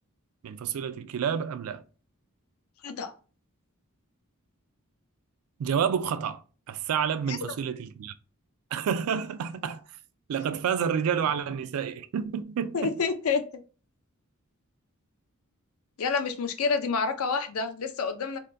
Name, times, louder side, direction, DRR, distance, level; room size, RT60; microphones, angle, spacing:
voice 1, 0.4-1.8 5.6-6.4 6.7-8.1 8.7-9.8 10.3-13.0, right 7 dB, 80° right, 0.3 m, -29 dB
voice 2, 2.8-3.1 7.3-7.4 12.7-13.4 16.0-18.4, left 5 dB, 75° left, 0.5 m, -28 dB
3.5 x 2.1 x 2.5 m
head